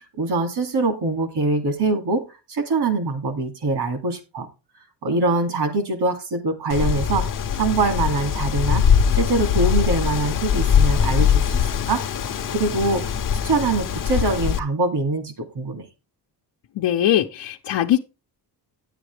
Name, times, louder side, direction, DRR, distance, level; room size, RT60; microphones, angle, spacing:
voice 1, 0.1-2.2 2.5-4.5 5.0-7.2 7.6-8.8 9.1-12.0 12.5-13.0 13.4-15.9, right 3 dB, 65° right, 8 dB, 2.7 m, -23 dB
Wind, 6.7-14.6, left 8 dB, 50° left, 0.9 m, -21 dB
voice 2, 16.7-18.0, left 12 dB, 80° left, 1 dB, 0.9 m, -21 dB
10.0 x 8.9 x 3.4 m, 0.28 s
wide cardioid pair, 165°, 42 cm